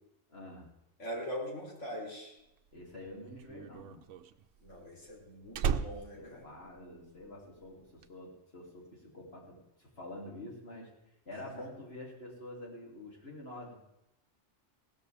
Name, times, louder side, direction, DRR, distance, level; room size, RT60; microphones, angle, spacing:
voice 1, 0.3-0.7 2.7-4.1 6.1-10.9 11.2-13.8, left 1 dB, 55° left, -2 dB, 3.0 m, -47 dB
voice 2, 1.0-2.3 4.6-6.5 11.6-11.7, equal, 80° left, -2 dB, 3.6 m, -42 dB
Slam, 2.6-7.3 7.6-8.0, right 7 dB, 85° right, 1.0 m, -36 dB
17.0 x 13.5 x 3.4 m, 0.88 s
omnidirectional pair, 1.2 m